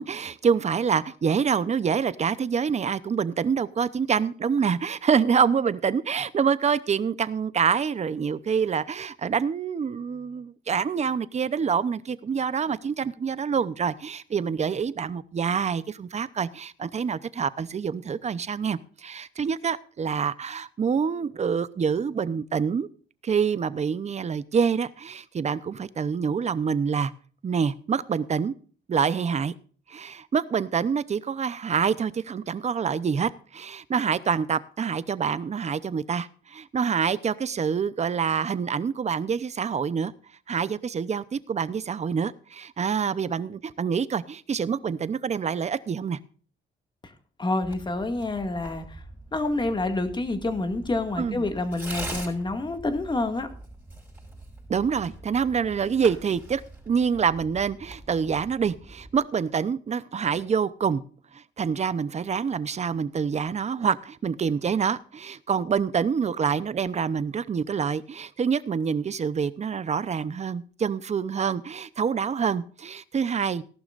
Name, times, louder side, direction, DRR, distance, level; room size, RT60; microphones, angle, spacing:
voice 1, 0.0-22.9 23.2-27.1 27.4-28.5 28.9-29.5 29.9-40.1 40.5-46.2 51.2-51.4 54.7-56.6 56.9-61.0 61.3-73.6, right 6 dB, 35° right, 16 dB, 0.7 m, -26 dB
voice 2, 47.4-49.0 49.3-53.5, left 2 dB, 25° left, 7 dB, 2.0 m, -28 dB
Tearing, 47.6-59.2, right 1 dB, 10° right, 5.7 m, -43 dB
17.5 x 12.0 x 2.5 m, 0.43 s
cardioid pair, 130°, 20 cm